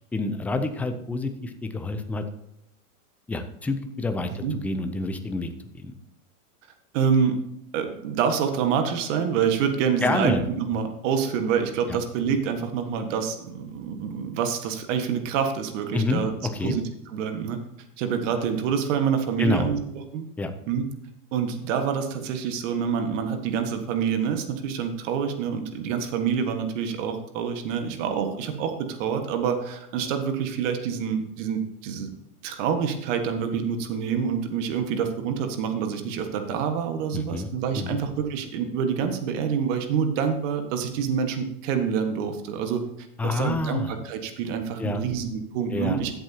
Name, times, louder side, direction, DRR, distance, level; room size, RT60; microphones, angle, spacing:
voice 1, 0.1-2.2 3.3-5.9 10.0-10.4 11.9-12.0 15.9-16.8 19.4-19.7 20.4-20.5 37.1-38.0 43.2-44.0 44.8-45.0 45.7-46.0, left 3 dB, 5° left, 7 dB, 0.4 m, -28 dB
voice 2, 6.9-7.4 7.7-16.3 16.6-16.8 17.1-17.6 18.0-19.8 20.1-20.2 20.7-20.9 21.3-32.1 32.4-42.8 43.2-46.1, right 7 dB, 55° right, 7 dB, 1.6 m, -27 dB
14.0 x 7.9 x 2.9 m, 0.81 s
hypercardioid pair, 125°, 46 cm